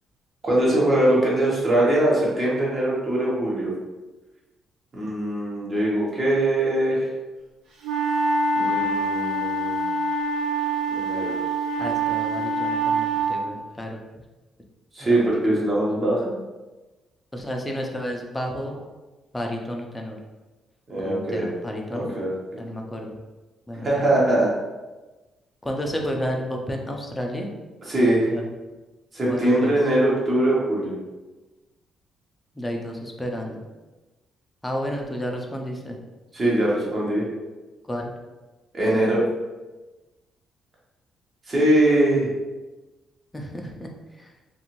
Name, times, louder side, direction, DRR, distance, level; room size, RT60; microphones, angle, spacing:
voice 1, 0.4-3.7 4.9-7.1 8.5-9.9 10.9-11.3 14.9-16.3 20.9-21.4 21.9-22.3 23.8-24.5 27.9-28.3 29.1-30.9 36.3-37.2 38.7-39.2 41.5-42.3, right 1 dB, 35° right, -5 dB, 1.1 m, -22 dB
sound 1, 7.8-13.3, right 2 dB, 75° right, 0.5 m, -25 dB
voice 2, 11.8-14.0 15.0-15.3 17.3-18.7 19.3-20.2 21.0-22.1 22.6-23.1 23.7-24.0 25.6-27.5 28.3-28.4 29.3-29.7 32.5-33.6 34.6-36.0 37.9-38.1 43.3-44.3, equal, 15° left, 1 dB, 0.5 m, -31 dB
2.5 x 2.5 x 3.0 m, 1.2 s
cardioid pair, 90°, 0 cm